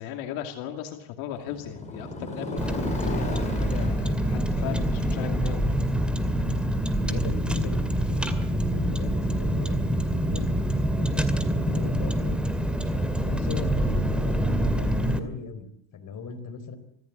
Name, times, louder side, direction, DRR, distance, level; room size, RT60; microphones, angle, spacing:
voice 1, 0.0-5.8, left 10 dB, 80° left, 5 dB, 2.6 m, -37 dB
Motorcycle, 1.3-9.4, left 2 dB, 15° left, 6.5 m, -37 dB
Car, 2.6-15.2, right 1 dB, ahead, 2.3 m, -26 dB
voice 2, 7.0-10.5 10.9-12.4 12.9-16.8, left 5 dB, 40° left, 7 dB, 4.3 m, -38 dB
25.0 x 15.5 x 8.6 m, 0.73 s
cardioid pair, 130°, 50 cm